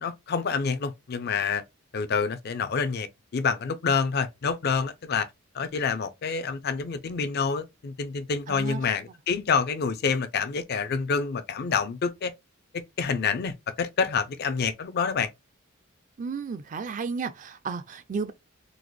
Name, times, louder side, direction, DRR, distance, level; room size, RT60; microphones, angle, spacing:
voice 1, 0.0-1.6 1.9-3.1 3.3-5.3 5.5-12.3 12.7-15.3, left 5 dB, 50° left, 0.4 m, -27 dB
voice 2, 8.5-8.8 16.2-18.3, right 5 dB, 40° right, 0.3 m, -33 dB
3.8 x 2.0 x 3.1 m
head